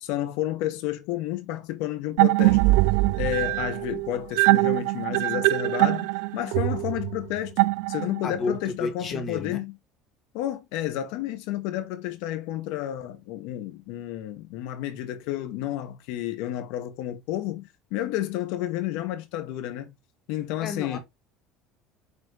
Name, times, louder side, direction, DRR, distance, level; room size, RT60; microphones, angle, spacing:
voice 1, 0.0-2.8 3.2-9.7 10.3-19.9 20.3-21.0, left 13 dB, 80° left, 1.6 m, -31 dB
sound 1, 2.2-8.4, right 21 dB, 85° right, 0.4 m, -22 dB
voice 2, 8.2-9.6 20.6-21.0, left 4 dB, 35° left, 2.0 m, -31 dB
7.5 x 3.3 x 4.1 m
cardioid pair, 140°, 0 cm